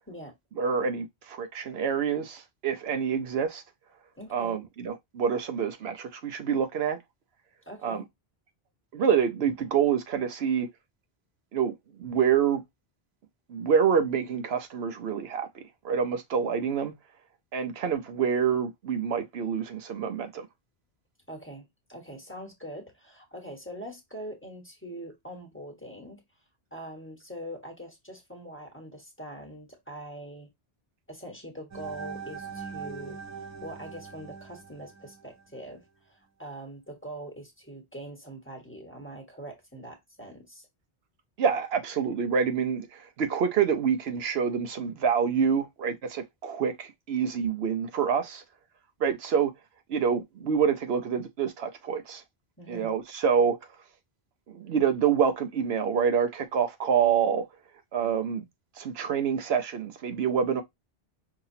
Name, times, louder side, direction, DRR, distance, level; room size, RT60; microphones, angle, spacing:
voice 1, 0.6-3.6 4.3-7.0 7.8-8.0 8.9-10.7 11.5-11.7 12.0-12.6 13.5-16.9 17.5-20.5 41.4-48.4 49.0-49.5 49.9-52.2 52.7-53.6 54.5-57.4 57.9-58.4 58.8-60.6, right 7 dB, 75° right, 0.9 m, -27 dB
voice 2, 4.2-4.6 7.6-8.1 21.3-26.2 26.7-30.5 31.1-33.2 33.4-40.7 52.6-52.9, right 1 dB, 10° left, 1.2 m, -43 dB
sound 1, 31.7-35.7, right 6 dB, 15° right, 0.9 m, -41 dB
5.6 x 2.8 x 2.7 m
omnidirectional pair, 1.1 m